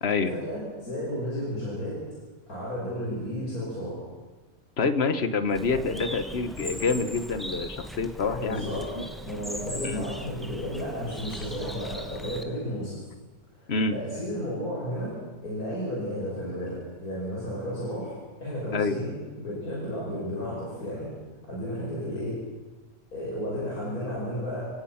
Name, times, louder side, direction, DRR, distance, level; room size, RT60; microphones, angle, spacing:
voice 1, 0.3-2.0 2.5-4.1 5.7-5.8 8.4-8.9 9.2-13.0 13.9-15.1 15.4-21.1 21.5-22.4 23.1-24.7, equal, 85° left, -6 dB, 6.5 m, -33 dB
voice 2, 4.8-8.7 8.9-9.0 9.8-10.0 13.7-14.0 18.7-19.0, left 4 dB, 50° left, 11 dB, 1.4 m, -27 dB
Bird, 5.5-12.4, equal, ahead, 1.4 m, -39 dB
30.0 x 17.5 x 5.8 m, 1.2 s
omnidirectional pair, 1.5 m